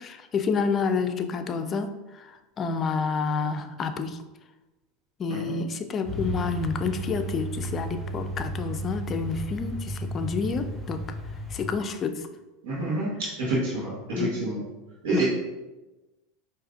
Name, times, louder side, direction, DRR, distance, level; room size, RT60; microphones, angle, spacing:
voice 1, 0.0-1.9 2.2-2.3 2.6-4.2 5.2-11.0 11.5-12.2 14.2-14.4 15.1-15.2, left 5 dB, 35° left, 8 dB, 0.4 m, -29 dB
Truck, 6.0-11.7, right 1 dB, ahead, 1.2 m, -34 dB
voice 2, 12.6-13.1 13.4-14.6 15.0-15.3, right 2 dB, 80° right, -7 dB, 1.1 m, -28 dB
4.7 x 2.6 x 2.4 m, 1.1 s
hypercardioid pair, 105°, 0 cm